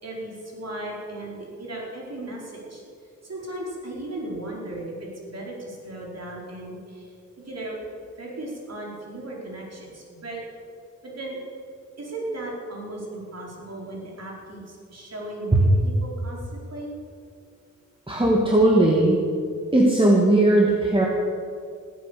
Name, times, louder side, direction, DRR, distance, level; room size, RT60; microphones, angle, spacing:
voice 1, 0.0-2.8 3.2-7.1 7.5-7.8 8.2-10.4 11.1-11.4 12.0-16.9, right 1 dB, 50° right, -3 dB, 4.8 m, -36 dB
voice 2, 18.1-19.2 19.7-21.1, right 1 dB, 15° right, -3 dB, 2.3 m, -18 dB
15.5 x 9.5 x 8.6 m, 2.3 s
cardioid pair, 70°, 32 cm